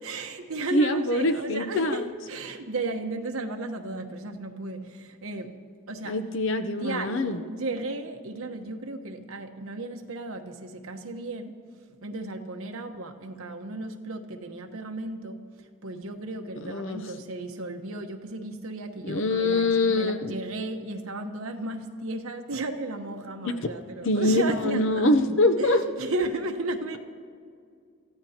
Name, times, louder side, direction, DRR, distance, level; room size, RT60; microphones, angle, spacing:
voice 1, 0.0-5.5 5.9-6.2 6.8-11.5 12.0-15.4 15.8-25.1 25.6-27.0, right 2 dB, 80° right, 4 dB, 1.1 m, -34 dB
voice 2, 0.7-2.0 6.1-7.4 16.6-17.0 19.0-20.3 23.4-23.7 24.0-25.8, left 2 dB, 60° left, 7 dB, 0.7 m, -24 dB
26.5 x 15.0 x 2.9 m, 2.2 s
head